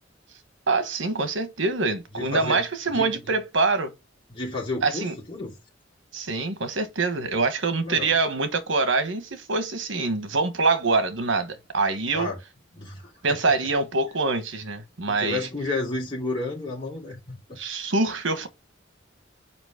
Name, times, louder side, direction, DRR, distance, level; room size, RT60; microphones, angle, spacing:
voice 1, 0.7-3.9 4.8-5.1 6.1-12.3 13.2-15.5 17.6-18.5, right 3 dB, 85° right, 1.2 m, -25 dB
voice 2, 2.1-2.6 2.9-3.3 4.3-5.5 7.8-8.1 12.1-12.4 12.8-13.5 15.1-17.4, left 2 dB, 30° left, 3.0 m, -31 dB
6.0 x 5.0 x 5.0 m
head